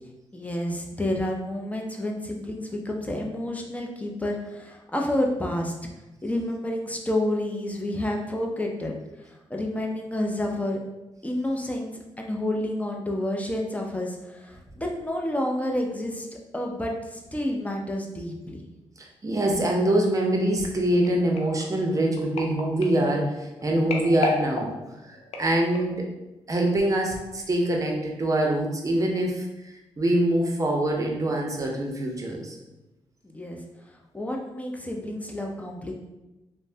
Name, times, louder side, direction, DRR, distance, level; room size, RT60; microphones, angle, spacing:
voice 1, 0.3-5.7 6.2-10.8 11.2-16.3 16.5-18.6 33.2-33.6 33.9-35.9, left 1 dB, 15° left, 0 dB, 0.5 m, -29 dB
voice 2, 19.0-24.8 25.0-26.1 26.5-29.5 30.0-32.6, right 1 dB, 30° right, 1 dB, 0.6 m, -24 dB
sound 1, 21.0-26.1 26.7-26.9 27.2-27.3, left 2 dB, 85° left, 0.4 m, -35 dB
3.1 x 2.1 x 2.7 m, 1.0 s
cardioid pair, 60°, 11 cm